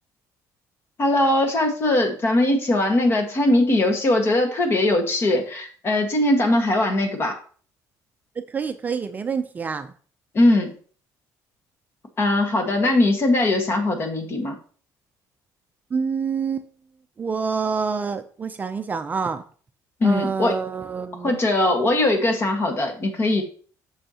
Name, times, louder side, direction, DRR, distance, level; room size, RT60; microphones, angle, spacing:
voice 1, 1.0-7.4 10.3-10.7 12.2-14.6 20.0-20.6 21.2-23.4, left 1 dB, 35° left, 5 dB, 1.6 m, -20 dB
voice 2, 8.5-9.9 15.9-16.7 17.2-19.4 20.0-21.4, right 5 dB, 25° right, 8 dB, 0.4 m, -27 dB
7.8 x 6.4 x 2.9 m, 0.43 s
cardioid pair, 140°, 7 cm